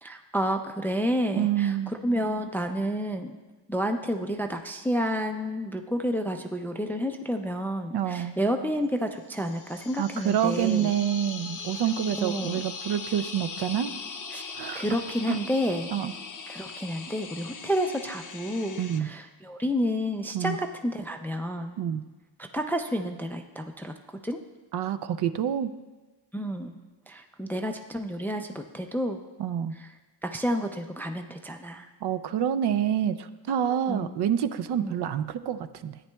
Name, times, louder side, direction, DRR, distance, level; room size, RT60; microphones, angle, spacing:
voice 1, 0.0-3.4 3.7-10.9 12.2-12.6 14.3-14.4 14.7-15.9 16.5-21.8 22.4-23.9 24.2-24.4 26.3-26.8 27.1-29.2 29.8-29.9 30.2-31.9 33.9-34.2 34.8-35.0, equal, 5° left, 5 dB, 0.3 m, -30 dB
voice 2, 1.4-1.9 7.9-8.3 10.0-13.9 14.6-14.9 15.3-15.4 15.9-16.1 18.8-19.1 20.3-20.6 21.8-22.0 24.7-25.7 29.4-29.7 32.0-36.0, right 9 dB, 65° right, 11 dB, 0.5 m, -27 dB
sound 1, 9.3-19.0, left 4 dB, 45° left, 0.7 m, -40 dB
13.5 x 9.5 x 2.2 m, 1.2 s
cardioid pair, 125°, 43 cm